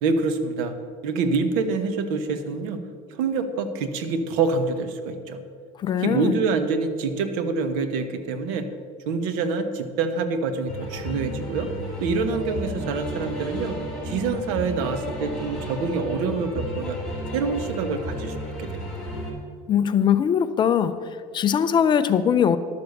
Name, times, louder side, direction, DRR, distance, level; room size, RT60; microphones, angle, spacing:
voice 1, 0.0-0.7 1.0-2.8 3.2-5.4 6.0-8.7 9.1-11.7 12.0-13.8 14.0-17.0 17.3-18.3 18.6-18.8, right 4 dB, 80° right, 9 dB, 1.2 m, -26 dB
voice 2, 5.8-6.3 19.7-20.9 21.3-22.6, left 8 dB, 25° left, 12 dB, 0.5 m, -21 dB
sound 1, 10.7-19.3, equal, 5° left, 2.5 m, -33 dB
11.5 x 6.9 x 6.6 m, 2.1 s
cardioid pair, 155°, 17 cm